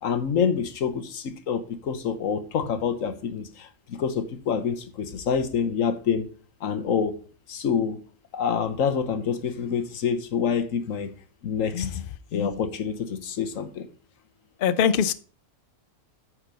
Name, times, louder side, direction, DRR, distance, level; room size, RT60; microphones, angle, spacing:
voice 1, 0.0-6.3 6.6-7.2 7.5-8.0 8.3-11.1 11.4-12.0 12.3-13.9, left 7 dB, 80° left, 1.3 m, -27 dB
voice 2, 14.6-15.1, left 7 dB, 60° left, 0.6 m, -21 dB
9.4 x 4.5 x 5.2 m
omnidirectional pair, 1.3 m